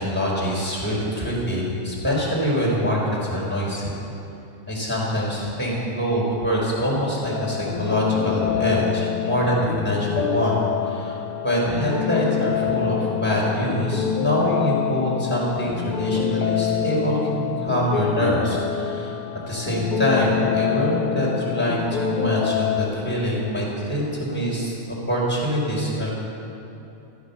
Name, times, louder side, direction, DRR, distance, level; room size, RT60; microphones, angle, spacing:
voice 1, 0.0-3.9 4.7-10.6 10.8-11.2 11.4-19.1 19.5-26.1, equal, 5° left, -5 dB, 4.3 m, -24 dB
sound 1, 7.3-22.9, left 9 dB, 75° left, 1.3 m, -26 dB
14.5 x 14.0 x 7.2 m, 2.9 s
omnidirectional pair, 3.7 m